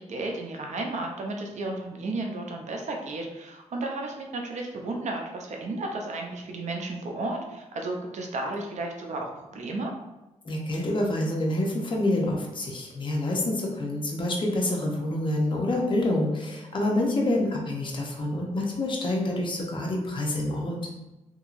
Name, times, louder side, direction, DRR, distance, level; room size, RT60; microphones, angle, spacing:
voice 1, 0.0-9.9 17.2-17.4, right 2 dB, 65° right, 1 dB, 0.6 m, -33 dB
voice 2, 10.5-20.8, left 1 dB, 40° left, -1 dB, 0.7 m, -27 dB
2.9 x 2.6 x 2.5 m, 1.0 s
cardioid pair, 90°, 13 cm